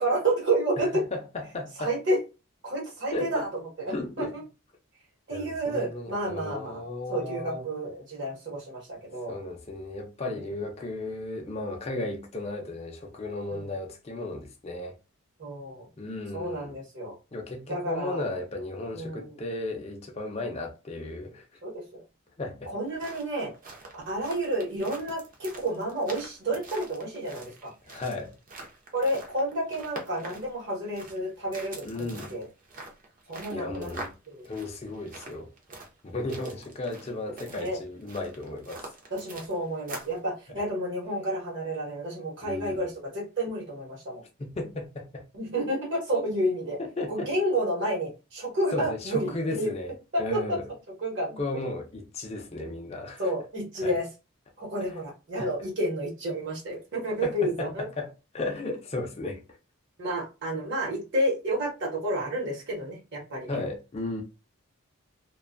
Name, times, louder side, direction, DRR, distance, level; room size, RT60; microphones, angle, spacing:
voice 1, 0.0-1.0 1.8-2.2 2.6-3.5 3.8-4.4 5.3-6.8 7.1-9.4 13.5-13.6 15.4-15.9 16.3-17.1 17.7-18.2 18.9-19.4 21.6-22.0 22.7-23.5 23.9-27.7 28.9-32.4 33.3-34.4 37.6-37.8 39.1-44.2 45.3-46.8 47.1-49.3 49.6-49.7 50.1-50.6 51.0-51.4 53.2-54.1 54.6-57.9 60.0-63.5, right 1 dB, 55° right, 1.0 m, -30 dB
voice 2, 0.8-1.9 3.1-3.5 3.9-4.3 5.3-7.6 9.3-15.0 16.0-16.8 17.3-21.6 22.4-22.7 27.9-28.3 31.8-32.4 33.5-34.1 34.4-35.5 36.0-38.9 42.4-42.9 44.4-45.2 46.8-47.3 48.7-50.6 51.4-53.3 53.8-53.9 54.8-55.0 55.4-55.5 57.2-59.4 63.5-64.2, left 2 dB, 30° left, 0.4 m, -35 dB
sound 1, 22.7-40.2, right 3 dB, 40° right, 0.6 m, -45 dB
2.5 x 2.2 x 2.5 m
head